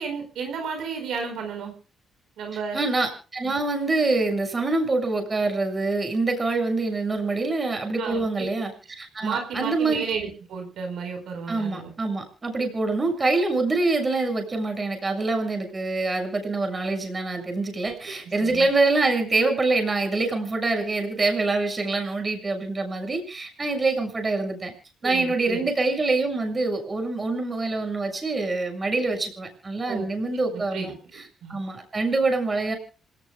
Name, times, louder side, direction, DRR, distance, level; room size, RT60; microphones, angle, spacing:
voice 1, 0.0-1.7 2.4-2.8 8.0-8.2 9.2-11.9 18.1-18.7 25.0-25.7 29.9-30.1 30.5-30.9 31.4-31.6, right 5 dB, 75° right, 5 dB, 4.7 m, -32 dB
voice 2, 2.7-8.7 9.0-10.0 11.5-24.7 25.0-32.8, right 3 dB, 30° right, 5 dB, 6.7 m, -25 dB
27.5 x 18.5 x 2.3 m, 0.37 s
cardioid pair, 90°, 0 cm